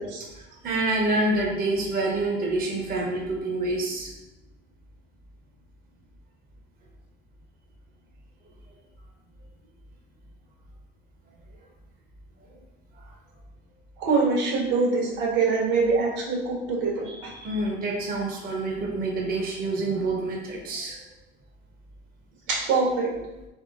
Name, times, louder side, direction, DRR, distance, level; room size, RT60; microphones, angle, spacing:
voice 1, 0.3-4.1 13.0-13.1 17.4-21.1, right 2 dB, 25° right, 0 dB, 0.8 m, -27 dB
voice 2, 14.0-17.5 22.5-23.1, right 4 dB, 65° right, -1 dB, 1.5 m, -24 dB
3.6 x 3.3 x 3.7 m, 0.99 s
hypercardioid pair, 85°, 34 cm